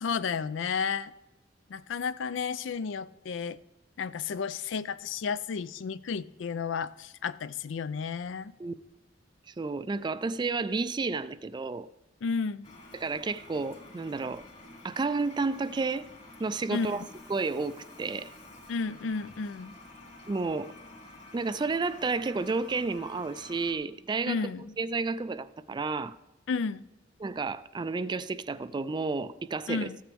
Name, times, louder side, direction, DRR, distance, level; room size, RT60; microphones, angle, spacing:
voice 1, 0.0-1.1 1.7-3.6 4.0-8.5 12.2-12.7 16.7-17.1 18.7-19.7 24.3-24.7 26.5-26.8 29.7-30.0, left 5 dB, 75° left, 17 dB, 0.4 m, -32 dB
voice 2, 9.6-11.9 12.9-14.4 14.8-16.1 16.4-17.0 17.3-18.3 20.3-20.7 21.3-24.4 24.8-26.2 27.2-29.9, right 4 dB, 25° right, 15 dB, 0.3 m, -31 dB
Toilet flush, 12.6-23.7, left 2 dB, 40° left, 2.2 m, -50 dB
14.0 x 9.1 x 3.4 m, 0.95 s
head